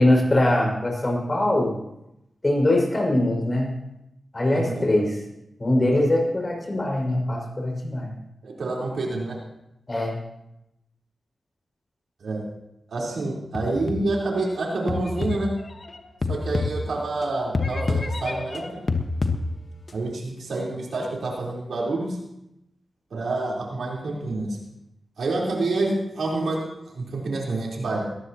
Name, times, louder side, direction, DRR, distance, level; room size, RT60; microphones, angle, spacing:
voice 1, 0.0-1.8 2.4-3.8 4.3-5.2 5.6-8.2 9.9-10.2, left 1 dB, 35° left, 0 dB, 6.0 m, -22 dB
voice 2, 4.5-4.9 8.4-9.4 12.2-12.4 12.9-15.5 16.3-18.6 19.9-22.2 23.1-24.6 25.2-26.6 26.9-28.0, right 2 dB, 85° right, -3 dB, 4.1 m, -27 dB
sound 1, 13.5-14.3 14.9-17.2 17.5-19.9, left 3 dB, 50° left, 1.4 m, -28 dB
20.5 x 15.0 x 3.0 m, 0.86 s
cardioid pair, 50°, 0 cm